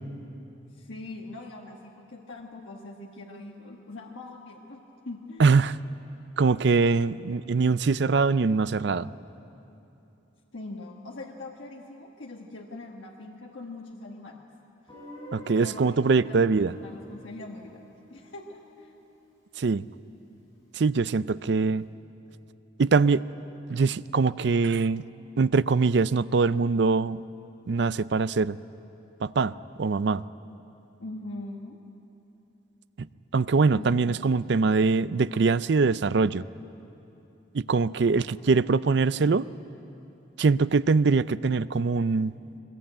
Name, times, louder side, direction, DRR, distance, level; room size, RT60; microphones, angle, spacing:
voice 1, 0.7-5.4 10.5-14.4 15.6-18.9 31.0-31.8 33.7-34.3, left 2 dB, 80° left, 0 dB, 1.4 m, -42 dB
voice 2, 5.4-5.8 6.4-9.1 15.3-16.7 19.6-19.8 20.7-21.9 22.8-23.2 23.7-25.0 25.4-27.2 27.7-28.6 29.2-29.5 29.8-30.2 33.0-33.1 33.3-36.4 37.5-39.5 40.4-42.3, right 4 dB, 60° right, 16 dB, 0.4 m, -23 dB
Guitar, 14.9-19.8, left 1 dB, 20° left, 7.4 m, -48 dB
22.0 x 20.5 x 8.8 m, 2.9 s
head